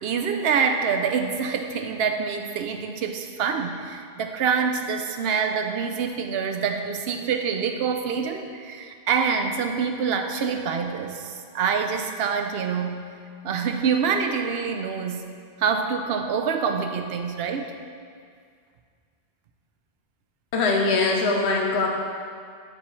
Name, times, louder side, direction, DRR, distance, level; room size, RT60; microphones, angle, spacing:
voice 1, 0.0-13.1 13.4-15.3 15.6-17.7, right 6 dB, 75° right, 5 dB, 0.8 m, -26 dB
voice 2, 20.5-21.9, left 3 dB, 80° left, 0 dB, 1.0 m, -22 dB
7.2 x 6.8 x 3.2 m, 2.2 s
omnidirectional pair, 1.1 m